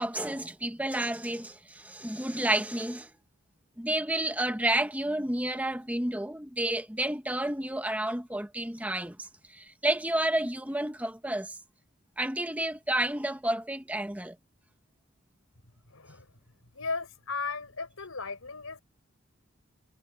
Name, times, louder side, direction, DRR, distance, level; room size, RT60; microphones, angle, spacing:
voice 1, 0.0-3.1 3.8-11.6 12.2-14.3, right 1 dB, 5° right, 1.2 m, -30 dB
voice 2, 15.9-16.3 16.7-18.8, left 4 dB, 85° left, 4.4 m, -36 dB
head